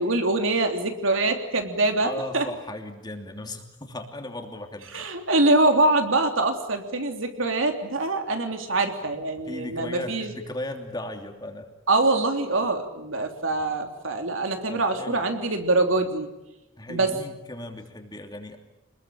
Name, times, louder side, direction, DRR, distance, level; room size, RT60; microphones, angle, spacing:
voice 1, 0.0-2.4 4.9-10.3 11.9-16.3 16.9-17.1, right 2 dB, 90° right, 5 dB, 3.3 m, -24 dB
voice 2, 2.0-5.1 9.4-11.7 14.7-15.2 16.8-18.6, left 1 dB, 20° left, 4 dB, 2.9 m, -37 dB
27.5 x 21.0 x 8.8 m, 0.96 s
head